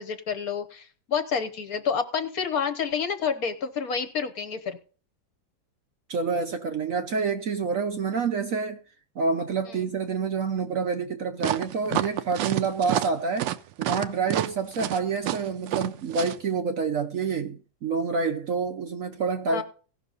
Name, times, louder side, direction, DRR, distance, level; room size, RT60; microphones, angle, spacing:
voice 1, 0.0-4.8 9.7-9.8 19.5-19.6, left 6 dB, 55° left, 1.4 m, -29 dB
voice 2, 6.1-8.8 9.2-13.5 13.8-19.6, right 5 dB, 60° right, 1.0 m, -28 dB
sound 1, 11.4-16.4, right 13 dB, 80° right, 1.3 m, -28 dB
17.5 x 6.0 x 4.0 m
omnidirectional pair, 2.0 m